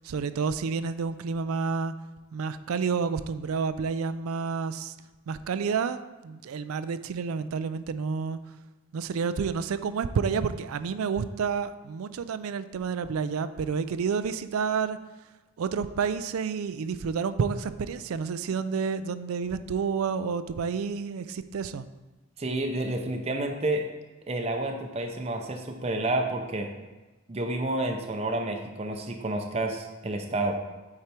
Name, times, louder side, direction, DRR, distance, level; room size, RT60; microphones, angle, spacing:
voice 1, 0.0-1.9 2.3-4.9 5.3-8.4 8.9-15.0 15.6-21.9, right 5 dB, 85° right, 12 dB, 0.4 m, -29 dB
voice 2, 22.4-23.8 24.3-26.7 27.3-30.5, right 2 dB, 30° right, 3 dB, 0.5 m, -29 dB
8.5 x 4.5 x 4.4 m, 1.2 s
head